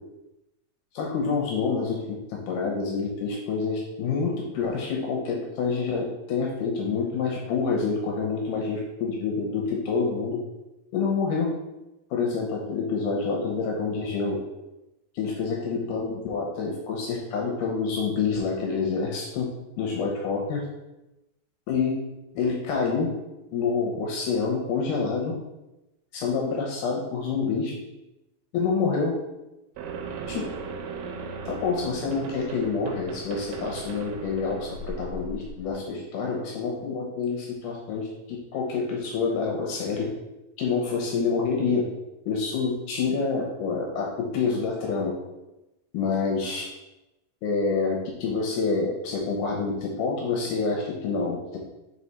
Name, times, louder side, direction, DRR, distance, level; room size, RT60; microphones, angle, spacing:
voice 1, 0.9-2.0 2.5-10.4 10.9-11.5 12.1-14.4 15.2-19.5 19.8-20.6 21.7-22.0 22.4-23.1 23.5-25.3 26.1-27.7 28.5-29.1 30.3-30.5 31.5-40.1 40.6-41.9 42.3-45.1 45.9-46.6 47.4-51.6, left 4 dB, 75° left, 0 dB, 2.0 m, -27 dB
sound 1, 29.8-35.8, right 4 dB, 90° right, 2.6 m, -37 dB
4.9 x 4.8 x 4.1 m, 0.96 s
omnidirectional pair, 4.3 m